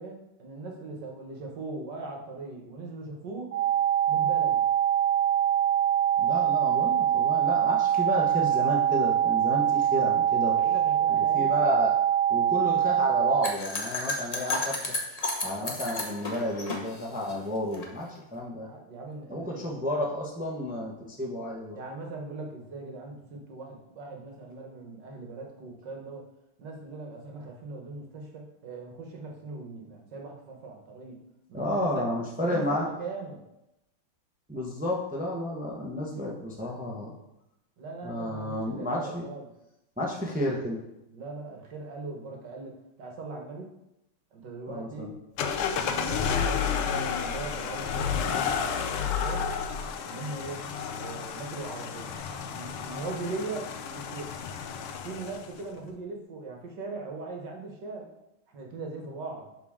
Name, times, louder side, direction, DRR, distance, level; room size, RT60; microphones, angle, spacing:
voice 1, 0.0-3.5 4.1-4.6 10.5-11.5 18.6-19.6 21.7-26.2 26.6-31.2 31.5-32.0 32.4-33.4 37.8-39.5 41.1-42.7 43.0-43.7 44.3-45.1 45.7-49.5 50.1-50.6 50.9-54.3 55.0-58.1 58.5-59.5, right 3 dB, 55° right, 1 dB, 1.7 m, -40 dB
sound 1, 3.5-13.5, right 10 dB, 85° right, 1.5 m, -24 dB
voice 2, 6.2-10.6 11.1-11.9 12.3-14.9 15.4-18.7 19.3-21.8 31.5-32.9 34.5-37.1 38.0-39.2 40.0-40.8 44.7-45.1, left 1 dB, 10° right, -2 dB, 0.4 m, -31 dB
sound 2, 13.4-17.8, left 2 dB, 45° left, 0.4 m, -32 dB
sound 3, 45.4-55.6, left 7 dB, 85° left, 1.6 m, -31 dB
11.5 x 4.1 x 3.6 m, 0.88 s
omnidirectional pair, 2.4 m